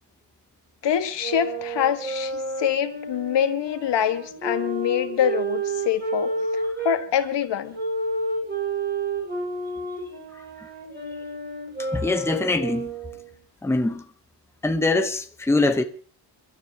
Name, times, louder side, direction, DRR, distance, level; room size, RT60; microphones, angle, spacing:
voice 1, 0.8-7.8, left 9 dB, 70° left, 1.8 m, -25 dB
sound 1, 1.2-7.0 7.7-13.3, right 2 dB, 20° right, 7.0 m, -30 dB
voice 2, 11.9-12.9 13.6-14.0 14.6-15.8, left 2 dB, 5° left, 1.0 m, -23 dB
29.5 x 12.5 x 3.0 m
cardioid pair, 145°, 43 cm